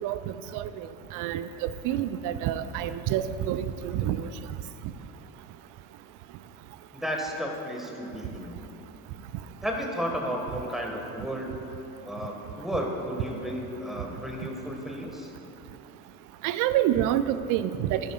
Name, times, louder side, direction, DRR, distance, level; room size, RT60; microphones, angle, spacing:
voice 1, 0.0-0.9 1.1-4.3 16.4-18.0, right 11 dB, 45° right, 13 dB, 0.5 m, -28 dB
voice 2, 6.9-8.6 9.6-11.6 12.0-15.3, equal, ahead, 0 dB, 1.7 m, -33 dB
14.5 x 10.0 x 2.5 m, 2.9 s
figure-of-eight pair, 60°, 45 cm